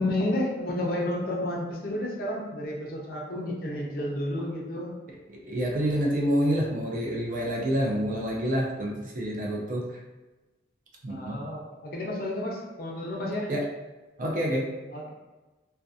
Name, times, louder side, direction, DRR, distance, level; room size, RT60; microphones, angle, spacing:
voice 1, 0.0-4.9 11.1-13.5 14.9-15.1, left 1 dB, 50° left, -2 dB, 0.5 m, -31 dB
voice 2, 5.3-9.9 11.0-11.4 13.5-13.7 14.2-14.7, equal, 45° right, -2 dB, 0.4 m, -27 dB
2.6 x 2.1 x 2.4 m, 1.1 s
head